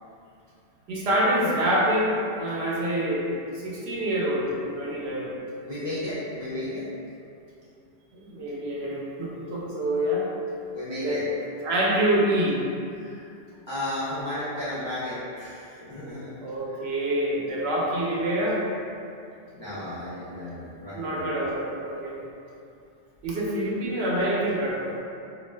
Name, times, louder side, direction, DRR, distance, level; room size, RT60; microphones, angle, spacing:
voice 1, 0.9-3.3 3.6-5.3 8.1-10.3 11.0-11.2 11.6-12.6 16.4-18.6 20.9-22.2 23.2-25.0, right 1 dB, 70° right, -4 dB, 0.8 m, -26 dB
voice 2, 5.6-6.9 10.7-11.3 12.9-13.3 13.7-16.3 19.6-21.5, left 1 dB, 40° left, -12 dB, 0.4 m, -33 dB
2.4 x 2.1 x 3.2 m, 2.5 s
omnidirectional pair, 1.1 m